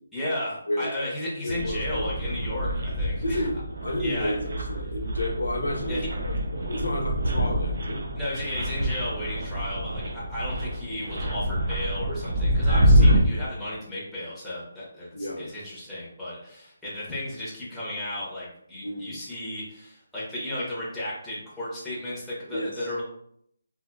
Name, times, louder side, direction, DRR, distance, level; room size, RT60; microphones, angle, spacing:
voice 1, 0.1-3.4 4.0-4.4 5.9-6.1 8.1-23.0, left 1 dB, ahead, -9 dB, 0.8 m, -34 dB
voice 2, 1.4-2.1 3.2-8.0 15.1-15.5 18.8-19.2 22.5-22.9, left 1 dB, 85° left, 2 dB, 0.7 m, -31 dB
sound 1, 1.5-13.2, equal, 55° right, 0.6 m, -26 dB
2.8 x 2.6 x 2.2 m, 0.71 s
hypercardioid pair, 165°, 0 cm